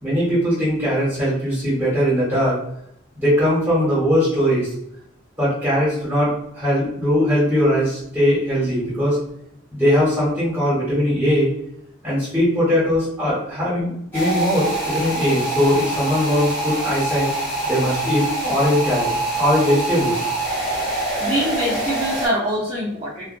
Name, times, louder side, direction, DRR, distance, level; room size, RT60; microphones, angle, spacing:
voice 1, 0.0-2.6 3.2-4.7 5.4-9.2 9.7-11.5 12.0-17.3 17.6-19.1 19.3-20.2, equal, 10° right, -9 dB, 1.3 m, -20 dB
sound 1, 14.1-22.3, right 2 dB, 10° left, 1.0 m, -25 dB
voice 2, 20.8-23.2, equal, 25° right, -11 dB, 0.7 m, -24 dB
2.5 x 2.3 x 2.5 m, 0.76 s
head